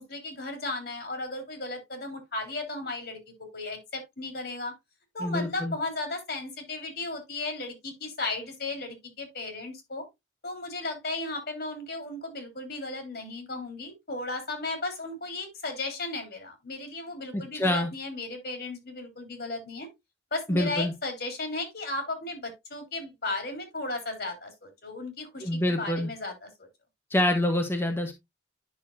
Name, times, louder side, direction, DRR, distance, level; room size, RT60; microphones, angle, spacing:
voice 1, 0.0-3.2 3.5-4.7 5.1-10.1 10.4-19.9 20.3-26.5, left 2 dB, 60° left, 3.5 m, -35 dB
voice 2, 5.2-5.8 17.3-17.9 20.5-20.9 25.4-26.1 27.1-28.1, left 1 dB, 15° left, 1.2 m, -26 dB
10.5 x 6.3 x 2.6 m
head